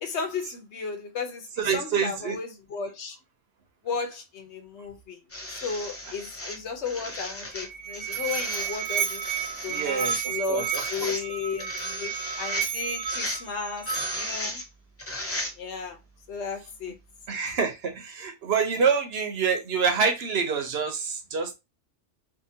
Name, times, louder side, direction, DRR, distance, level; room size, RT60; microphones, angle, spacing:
voice 1, 0.0-3.2 3.8-5.2 5.5-9.3 9.6-12.1 12.4-14.6 15.6-16.0 16.3-16.9, left 5 dB, 70° left, 1.0 m, -34 dB
voice 2, 1.6-2.4 9.7-11.1 17.3-21.5, right 5 dB, 65° right, 0.8 m, -27 dB
sound 1, 5.3-15.9 16.9-17.0, left 1 dB, 20° left, 0.4 m, -36 dB
Musical instrument, 7.5-14.5, right 8 dB, 90° right, 1.0 m, -32 dB
2.7 x 2.6 x 2.7 m
omnidirectional pair, 1.2 m